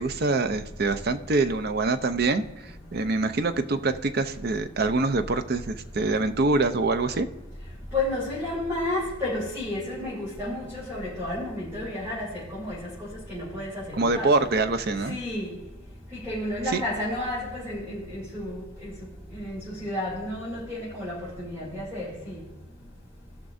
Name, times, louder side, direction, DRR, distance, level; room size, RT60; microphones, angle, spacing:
voice 1, 0.0-7.3 13.9-15.2 16.7-16.8, right 3 dB, 50° right, 9 dB, 0.6 m, -25 dB
voice 2, 7.9-12.8 13.3-14.3 15.1-15.5 16.2-18.9 19.3-22.4, left 1 dB, 15° right, -9 dB, 3.2 m, -31 dB
17.5 x 5.9 x 2.6 m, 1.1 s
head